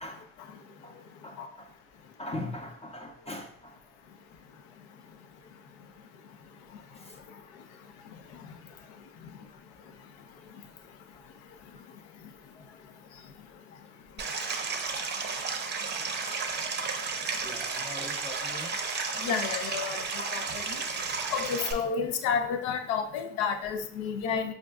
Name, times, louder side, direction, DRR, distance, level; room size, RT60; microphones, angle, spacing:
voice 1, 0.0-1.7 2.2-3.8 6.9-7.2 11.9-12.0 12.5-12.7 13.7-13.8 14.6-14.7 17.4-18.8, left 2 dB, 20° left, 2 dB, 0.5 m, -42 dB
voice 2, 0.6-1.5 4.0-17.5 19.1-24.5, left 6 dB, 85° left, 7 dB, 0.5 m, -36 dB
Stream, 14.2-21.7, right 4 dB, 35° right, 0.5 m, -33 dB
5.0 x 2.5 x 2.2 m, 0.65 s
supercardioid pair, 70°, 32 cm